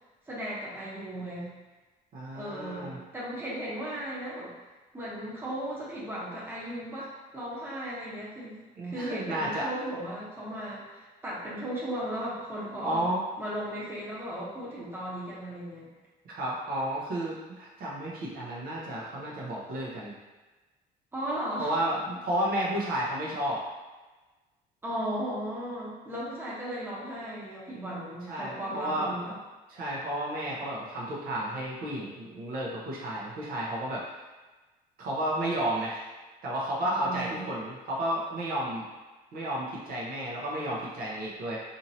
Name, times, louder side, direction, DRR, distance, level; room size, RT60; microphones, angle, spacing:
voice 1, 0.3-1.5 2.3-4.5 4.9-13.1 13.4-15.9 21.1-21.7 24.8-29.3 36.8-37.5, right 1 dB, 15° right, -7 dB, 0.9 m, -36 dB
voice 2, 2.1-3.0 8.8-9.7 12.8-13.2 16.3-20.1 21.6-23.6 28.3-29.1 29.7-34.0 35.0-36.1 36.4-38.8 39.3-41.6, right 1 dB, 60° right, -5 dB, 0.8 m, -32 dB
2.9 x 2.7 x 2.7 m, 1.2 s
cardioid pair, 110°, 17 cm